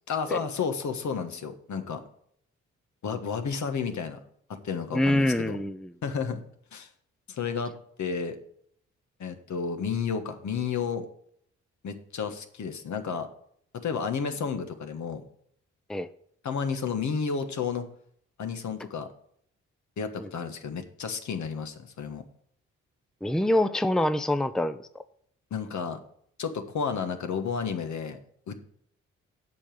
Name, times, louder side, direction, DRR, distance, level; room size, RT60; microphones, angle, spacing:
voice 1, 0.1-2.0 3.0-4.2 4.5-5.6 6.0-6.4 6.7-6.9 7.3-7.7 8.0-8.4 9.2-11.1 11.8-13.3 13.8-15.2 16.4-17.8 18.4-19.1 20.0-22.2 25.5-26.0 26.4-28.2 28.5-28.6, left 6 dB, 65° left, 7 dB, 1.4 m, -31 dB
voice 2, 4.9-5.9 15.9-16.1 20.2-20.3 23.2-25.0, left 1 dB, ahead, 11 dB, 0.7 m, -25 dB
8.4 x 5.2 x 7.7 m, 0.67 s
supercardioid pair, 55°, 31 cm